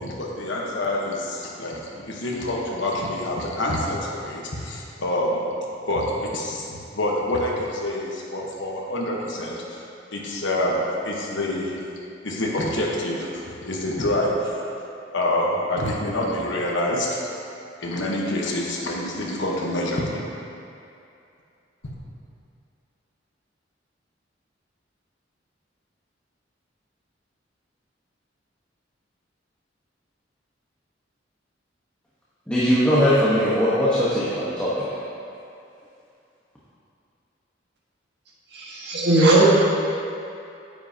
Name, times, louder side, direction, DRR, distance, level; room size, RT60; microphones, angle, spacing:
voice 1, 0.0-5.4 5.9-9.8 10.1-11.8 12.2-14.6 15.1-17.2 17.8-20.2, left 1 dB, 75° left, -3 dB, 1.2 m, -26 dB
voice 2, 32.5-34.8, equal, 5° left, -10 dB, 1.1 m, -20 dB
voice 3, 38.5-39.4, right 2 dB, 65° right, -5 dB, 1.6 m, -18 dB
9.3 x 7.9 x 2.8 m, 2.7 s
head